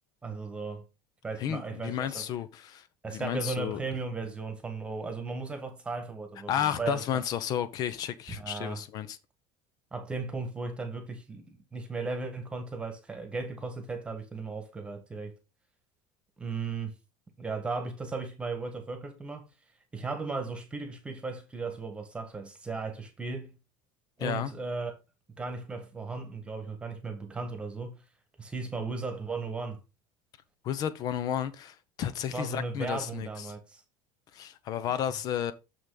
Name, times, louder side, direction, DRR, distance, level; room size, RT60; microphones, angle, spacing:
voice 1, 0.2-0.8 1.2-2.3 3.0-7.2 8.4-8.8 9.9-15.3 16.4-16.9 17.4-19.5 19.9-23.6 24.2-24.9 25.4-28.0 28.4-29.8 32.3-33.8, right 4 dB, 10° right, 1.5 m, -36 dB
voice 2, 1.4-2.9 3.1-3.8 6.5-9.2 24.2-24.5 30.6-33.5 34.3-35.5, left 10 dB, 35° left, 0.8 m, -32 dB
7.0 x 6.3 x 3.9 m
cardioid pair, 165°, 11 cm